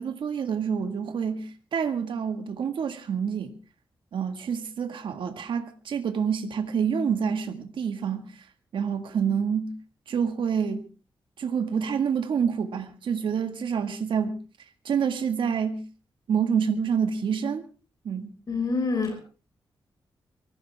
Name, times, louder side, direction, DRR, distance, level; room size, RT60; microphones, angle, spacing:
voice 1, 0.0-3.5 4.1-8.3 8.7-9.7 10.1-10.9 11.4-14.4 14.8-15.8 16.3-17.6 18.1-18.3, right 7 dB, 75° right, 1.9 m, -27 dB
voice 2, 18.5-19.2, left 4 dB, 45° left, 5.5 m, -26 dB
24.0 x 15.5 x 3.6 m
wide cardioid pair, 110°, 9 cm